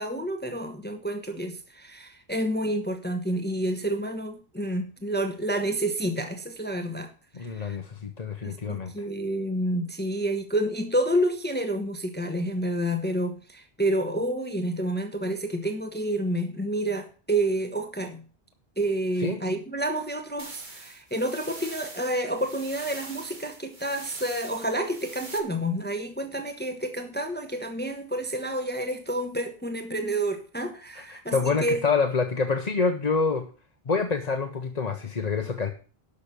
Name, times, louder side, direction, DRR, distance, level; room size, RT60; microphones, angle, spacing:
voice 1, 0.0-7.1 7.4-7.8 8.4-18.2 18.8-31.8, right 1 dB, 10° left, 1.1 m, -29 dB
voice 2, 7.3-9.1 19.2-19.4 31.0-33.5 33.9-35.7, left 4 dB, 45° left, 1.0 m, -27 dB
sound 1, 20.4-25.4, right 2 dB, 50° right, 2.1 m, -43 dB
12.0 x 6.2 x 6.8 m
omnidirectional pair, 1.0 m